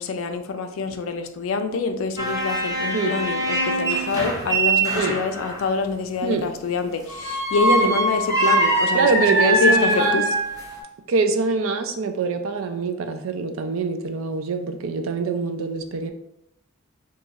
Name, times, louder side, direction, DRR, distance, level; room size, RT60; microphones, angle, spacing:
voice 1, 0.0-10.2, left 4 dB, 80° left, 7 dB, 0.4 m, -26 dB
sound 1, 2.2-5.6 7.1-10.8, right 2 dB, 20° right, 0.7 m, -22 dB
voice 2, 8.9-10.2 11.1-16.1, right 4 dB, 75° right, 8 dB, 0.4 m, -24 dB
2.7 x 2.4 x 3.9 m, 0.80 s
head